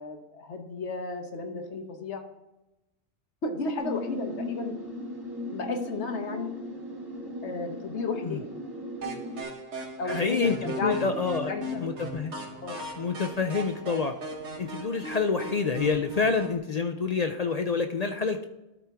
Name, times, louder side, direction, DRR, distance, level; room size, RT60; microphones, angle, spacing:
voice 1, 0.0-2.2 3.4-4.7 5.5-6.5 7.4-8.5 10.0-12.3 12.6-12.8, left 3 dB, 80° left, 5 dB, 1.4 m, -33 dB
sound 1, 3.8-9.4, left 1 dB, 20° right, 1.2 m, -37 dB
sound 2, 9.0-16.6, right 1 dB, 90° right, 1.7 m, -38 dB
voice 2, 9.7-11.5 11.8-12.3 13.0-14.2 14.6-18.5, left 4 dB, 50° left, 6 dB, 0.5 m, -28 dB
12.5 x 4.4 x 3.5 m, 0.97 s
omnidirectional pair, 1.1 m